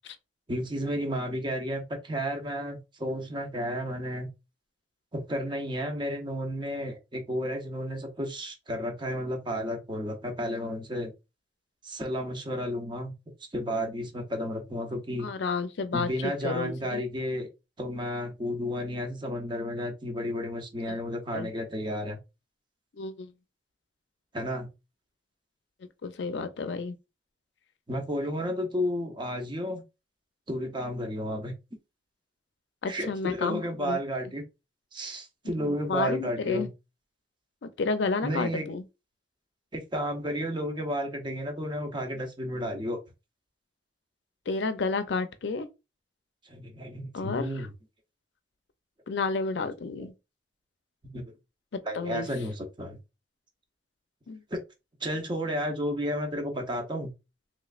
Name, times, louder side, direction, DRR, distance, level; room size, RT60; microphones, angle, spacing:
voice 1, 0.5-4.3 5.1-11.1 11.8-13.1 13.5-15.3 15.9-17.5 17.8-22.2 24.3-24.7 27.9-29.8 30.5-31.5 32.9-34.4 34.9-36.7 38.2-38.7 39.7-43.0 46.4-47.7 50.0-50.1 51.0-51.2 51.8-53.0 54.5-54.6 55.0-57.1, equal, 25° right, 0.7 m, -32 dB
voice 2, 15.2-17.0 20.9-21.0 21.3-21.5 23.0-23.3 26.0-27.0 32.8-34.0 35.6-36.7 37.6-38.8 44.5-45.7 47.1-47.5 49.1-50.1 51.9-52.3 54.3-54.4, left 4 dB, 75° left, 0.5 m, -31 dB
3.2 x 3.1 x 2.4 m
head